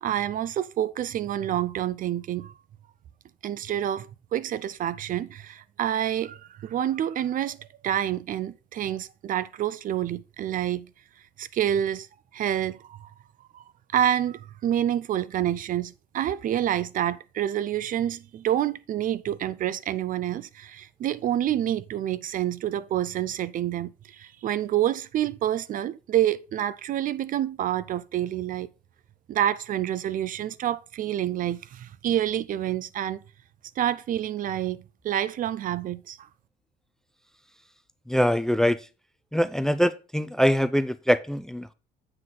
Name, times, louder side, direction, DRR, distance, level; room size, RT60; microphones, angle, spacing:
voice 1, 0.0-2.5 3.4-10.9 11.4-12.1 12.3-13.1 13.5-13.6 13.9-28.7 29.3-33.2 33.8-36.2, right 11 dB, 55° right, 0.5 m, -28 dB
voice 2, 38.1-38.8 39.3-41.7, equal, 5° left, 0.4 m, -23 dB
7.7 x 6.0 x 3.8 m
cardioid pair, 110°, 17 cm